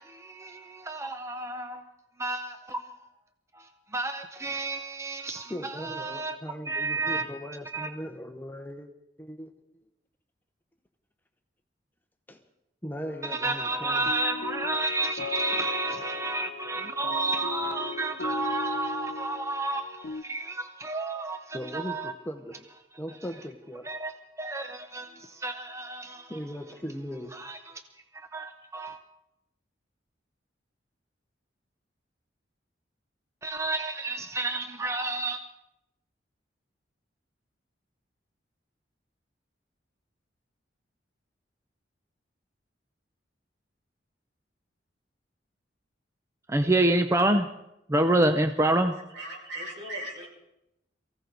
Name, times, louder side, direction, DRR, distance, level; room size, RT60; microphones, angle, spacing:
voice 1, 0.0-1.8 2.2-2.9 3.5-6.4 6.7-7.3 7.7-7.9 13.2-22.1 23.8-26.4 27.3-27.8 28.1-29.0 33.4-35.4 46.5-47.5 47.9-49.0, right 2 dB, 15° right, 0.6 m, -29 dB
voice 2, 5.5-8.9 9.2-9.5 12.3-12.4 12.8-14.1 15.5-15.7 21.5-22.6 23.0-23.9 26.3-27.3, equal, 10° left, 0.9 m, -38 dB
sound 1, 13.0-20.2, left 4 dB, 60° left, 0.5 m, -38 dB
voice 3, 49.1-50.3, right 1 dB, 75° right, 6.2 m, -37 dB
23.0 x 15.5 x 4.0 m
head